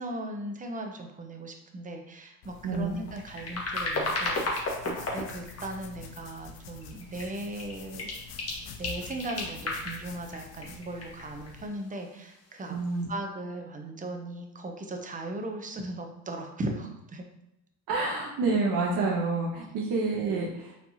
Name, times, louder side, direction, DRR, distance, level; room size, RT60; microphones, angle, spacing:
voice 1, 0.0-8.1 8.8-12.8 13.1-17.2 19.7-19.8, right 1 dB, 15° right, 4 dB, 0.7 m, -38 dB
sound 1, 2.4-11.7, left 6 dB, 65° left, 0.8 m, -47 dB
sound 2, 3.1-6.0 6.5-7.3 7.6-12.1 12.8-13.0, left 2 dB, 30° left, 1.4 m, -34 dB
voice 2, 12.7-13.1 17.9-20.8, right 3 dB, 50° right, -4 dB, 1.0 m, -28 dB
4.4 x 3.3 x 2.8 m, 0.85 s
hypercardioid pair, 75°, 46 cm